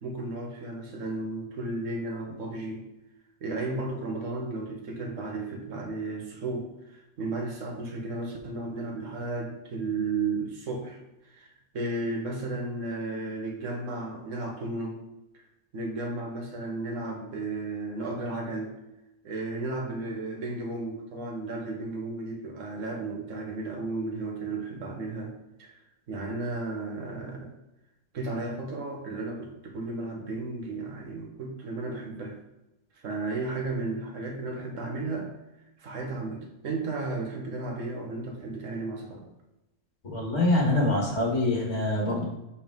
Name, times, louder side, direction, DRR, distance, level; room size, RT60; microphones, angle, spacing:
voice 1, 0.0-2.8 3.4-11.0 11.3-15.0 15.7-18.8 19.2-25.3 25.6-25.7 26.1-27.5 28.1-32.4 33.0-35.3 35.8-39.3, right 2 dB, 60° right, 1 dB, 1.5 m, -34 dB
voice 2, 40.0-42.2, left 2 dB, 50° left, -2 dB, 2.0 m, -25 dB
5.3 x 5.1 x 3.6 m, 0.95 s
omnidirectional pair, 1.5 m